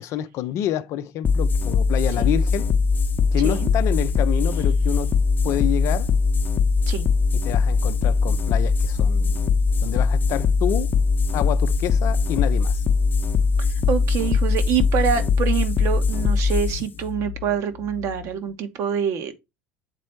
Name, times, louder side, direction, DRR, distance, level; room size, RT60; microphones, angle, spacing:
voice 1, 0.0-2.7 3.3-5.2 5.4-6.1 7.4-9.4 9.8-10.9 11.3-12.8, left 12 dB, 50° left, 0.6 m, -28 dB
sound 1, 1.2-18.3, left 4 dB, 30° left, 0.9 m, -21 dB
voice 2, 13.6-19.3, right 8 dB, 50° right, 1.3 m, -26 dB
8.2 x 4.2 x 4.5 m
figure-of-eight pair, 70°, 6 cm